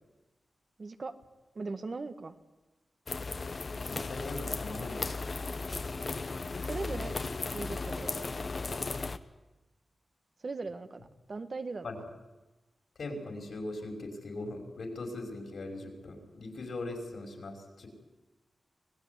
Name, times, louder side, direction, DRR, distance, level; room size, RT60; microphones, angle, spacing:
voice 1, 0.8-1.1 1.5-2.3 6.6-7.1 7.5-8.8 10.4-11.9, right 3 dB, 45° right, 8 dB, 1.5 m, -39 dB
sound 1, 3.1-9.2, left 3 dB, 45° left, 1.1 m, -36 dB
voice 2, 3.8-5.3 11.8-11.9 13.0-17.9, left 2 dB, 70° left, 3 dB, 5.8 m, -40 dB
25.5 x 19.0 x 9.7 m, 1.1 s
wide cardioid pair, 100°, 0 cm